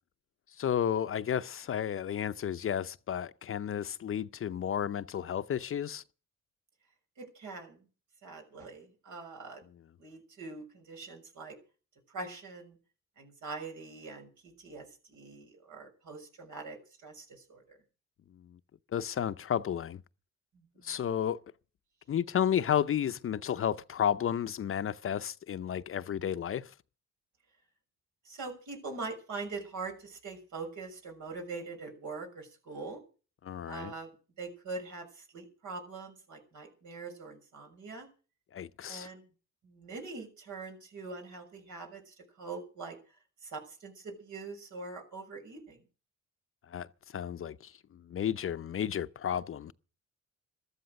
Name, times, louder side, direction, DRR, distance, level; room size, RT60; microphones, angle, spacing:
voice 1, 0.6-6.0 18.3-18.6 18.9-20.0 20.8-21.4 22.1-26.7 33.4-33.9 38.5-39.1 46.7-46.9 47.1-49.7, left 9 dB, 45° left, 0.7 m, -32 dB
voice 2, 7.2-7.8 8.2-9.6 10.0-11.6 12.1-12.8 13.2-14.3 14.6-17.8 20.5-21.1 28.2-33.0 33.6-38.1 38.9-39.2 39.6-43.0 43.4-45.8, right 3 dB, 75° right, 6.5 m, -43 dB
14.0 x 13.0 x 6.4 m
cardioid pair, 90°, 30 cm